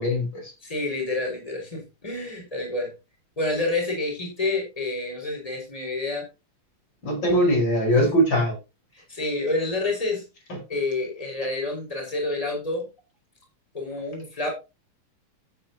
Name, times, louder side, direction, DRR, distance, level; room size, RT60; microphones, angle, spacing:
voice 1, 0.0-0.5 7.0-8.6 10.5-10.6, equal, 55° left, 5.7 m, -21 dB
voice 2, 0.6-2.9 3.4-6.3 7.2-7.5 8.0-8.1 8.9-10.2 10.7-12.9 13.7-14.5, left 2 dB, 15° left, 5.3 m, -28 dB
14.0 x 9.3 x 2.9 m
omnidirectional pair, 2.3 m